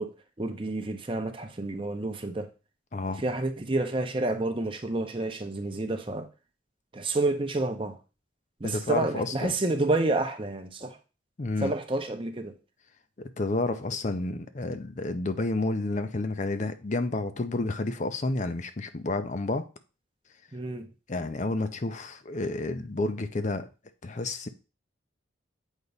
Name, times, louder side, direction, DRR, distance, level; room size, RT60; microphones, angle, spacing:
voice 1, 0.0-2.5 3.2-6.3 6.9-8.0 8.6-11.0 11.6-12.6 20.5-20.9, right 2 dB, 25° right, 0.7 m, -29 dB
voice 2, 2.9-3.2 8.6-9.5 11.4-11.7 13.4-19.7 21.1-23.7 24.0-24.5, left 2 dB, 40° left, 0.5 m, -30 dB
8.1 x 3.0 x 5.3 m
head